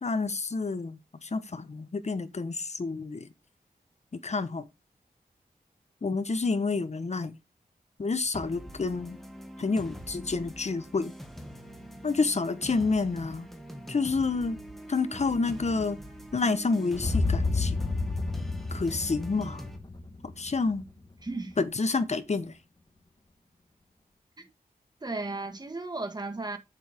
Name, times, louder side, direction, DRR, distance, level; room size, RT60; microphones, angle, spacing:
voice 1, 0.0-3.3 4.2-4.6 6.0-7.4 8.0-9.2 9.6-11.1 12.0-13.5 13.9-14.6 14.9-16.0 16.3-17.7 18.7-19.6 20.4-20.8 21.6-22.5, left 4 dB, 45° left, 1.3 m, -29 dB
sound 1, 8.3-19.8, equal, ahead, 2.2 m, -44 dB
sound 2, 16.9-21.0, left 3 dB, 30° left, 1.7 m, -30 dB
voice 2, 21.2-21.6 24.4-24.5 25.0-26.6, right 3 dB, 25° right, 1.8 m, -35 dB
8.3 x 7.3 x 3.7 m
wide cardioid pair, 85°, 16 cm